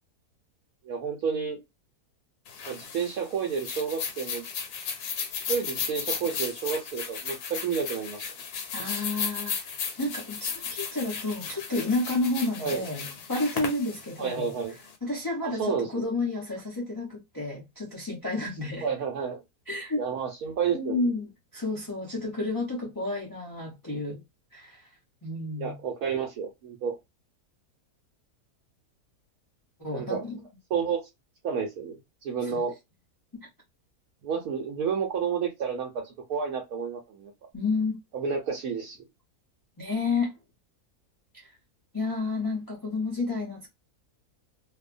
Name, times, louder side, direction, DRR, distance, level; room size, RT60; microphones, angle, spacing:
voice 1, 0.8-1.6 2.7-4.4 5.5-8.3 12.6-12.8 14.2-14.8 15.4-16.1 18.8-19.4 20.0-21.0 25.6-27.0 29.9-30.3 30.7-31.1 31.4-32.7 34.2-37.3 38.1-39.0, right 6 dB, 75° right, 1.1 m, -30 dB
sound 1, 2.5-14.9, left 6 dB, 85° left, 1.2 m, -35 dB
voice 2, 8.7-14.5 15.0-18.9 19.7-20.0 20.7-24.2 24.5-24.9 25.2-25.8 29.8-30.4 32.5-32.6 37.5-38.0 39.8-40.3 41.9-43.7, left 2 dB, 25° left, 0.4 m, -31 dB
2.6 x 2.2 x 2.4 m
omnidirectional pair, 1.6 m